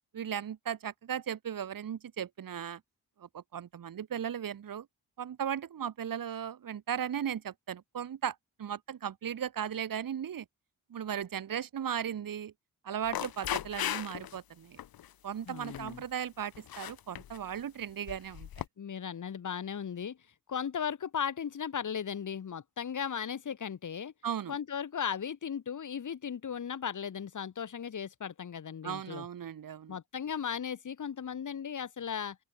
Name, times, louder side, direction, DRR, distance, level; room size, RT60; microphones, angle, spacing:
voice 1, 0.1-2.8 3.2-4.9 5.2-10.5 10.9-12.5 12.8-14.8 15.2-18.6 24.2-24.6 28.8-30.0, right 9 dB, 70° right, 2.4 m, -37 dB
sound 1, 13.0-14.4 14.8-15.1 15.5-16.0 16.6-17.4 18.1-18.6, left 11 dB, 75° left, 1.3 m, -37 dB
voice 2, 15.5-16.0 18.8-20.2 20.5-24.1 24.5-29.3 29.9-32.4, left 7 dB, 55° left, 2.2 m, -36 dB
open air
cardioid pair, 85°, 36 cm